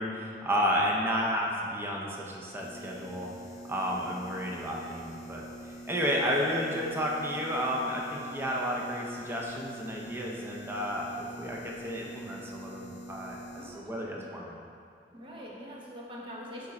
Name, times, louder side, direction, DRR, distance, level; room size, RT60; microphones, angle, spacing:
voice 1, 0.0-3.3 3.7-14.6, equal, 15° right, -2 dB, 0.6 m, -32 dB
sound 1, 2.6-13.7, right 1 dB, 40° left, 1.3 m, -45 dB
voice 2, 13.5-14.3 15.1-16.7, equal, 30° right, -4 dB, 1.1 m, -44 dB
7.1 x 5.2 x 4.2 m, 2.3 s
head